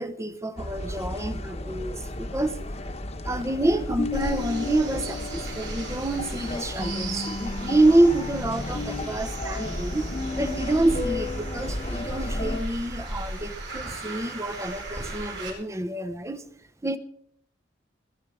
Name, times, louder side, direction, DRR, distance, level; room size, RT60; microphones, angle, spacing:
voice 1, 0.0-2.6 3.2-10.1 10.4-16.4 16.8-17.0, right 2 dB, 15° right, 0.9 m, -27 dB
sound 1, 0.6-12.6, left 2 dB, 35° left, 1.2 m, -33 dB
sound 2, 4.1-15.5, right 2 dB, 75° right, 8.0 m, -36 dB
20.5 x 11.5 x 5.0 m
head